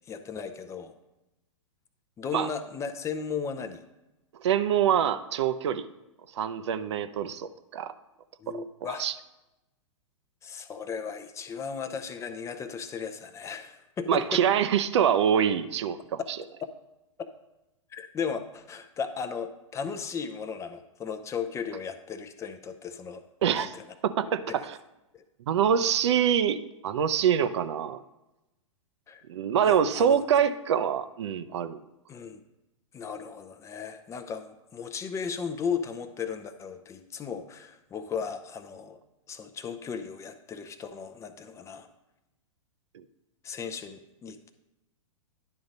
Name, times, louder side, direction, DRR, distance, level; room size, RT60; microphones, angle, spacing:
voice 1, 0.1-0.9 2.2-3.8 8.4-9.0 10.4-14.4 17.9-23.2 23.6-23.8 24.2-24.7 25.1-25.2 29.1-29.2 29.7-30.2 32.1-32.4 32.9-39.0 39.3-41.9 43.4-44.5, left 6 dB, 15° left, 7 dB, 0.6 m, -36 dB
voice 2, 4.4-5.9 6.3-7.9 8.5-8.6 9.0-9.1 14.1-16.2 23.4-23.7 24.0-24.8 25.5-28.0 29.3-31.8 42.9-43.0, right 8 dB, 60° right, 12 dB, 0.6 m, -25 dB
10.5 x 3.8 x 5.2 m, 0.96 s
figure-of-eight pair, 110°, 17 cm